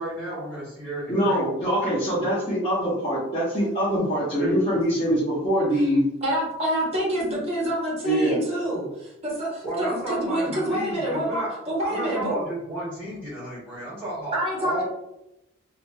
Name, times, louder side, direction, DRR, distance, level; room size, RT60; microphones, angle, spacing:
voice 1, 0.0-1.5 3.9-4.0 4.4-4.5 9.6-11.5 11.8-14.8, right 1 dB, 5° left, -10 dB, 1.5 m, -32 dB
voice 2, 1.1-6.0 8.0-8.4, equal, 25° left, -10 dB, 0.8 m, -23 dB
voice 3, 6.2-12.3 14.3-14.8, right 1 dB, 30° right, -4 dB, 0.8 m, -27 dB
2.8 x 2.5 x 2.2 m, 0.88 s
head